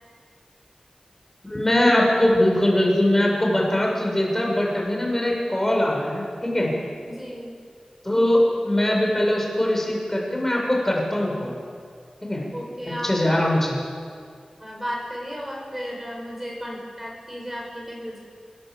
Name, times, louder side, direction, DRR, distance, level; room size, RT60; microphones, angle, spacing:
voice 1, 1.4-6.7 8.0-11.5 12.2-12.4 13.0-13.8, left 1 dB, 15° left, -1 dB, 6.5 m, -21 dB
voice 2, 7.0-7.6 12.5-13.1 14.6-18.2, equal, 10° right, -1 dB, 5.8 m, -34 dB
26.5 x 21.0 x 7.9 m, 2.2 s
wide cardioid pair, 85°, 2 cm